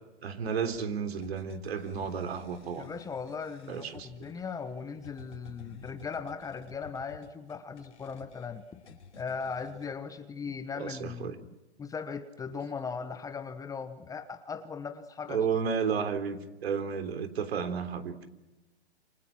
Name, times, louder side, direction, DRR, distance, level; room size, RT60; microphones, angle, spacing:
voice 1, 0.2-2.9 3.7-4.1 10.8-11.4 15.3-18.3, right 6 dB, 65° right, 8 dB, 3.8 m, -32 dB
sound 1, 1.2-9.9, left 5 dB, 85° left, 5.1 m, -52 dB
voice 2, 2.8-11.3 11.8-15.4, left 5 dB, 10° left, 10 dB, 1.1 m, -38 dB
28.0 x 27.0 x 6.0 m, 1.1 s
hypercardioid pair, 135°, 33 cm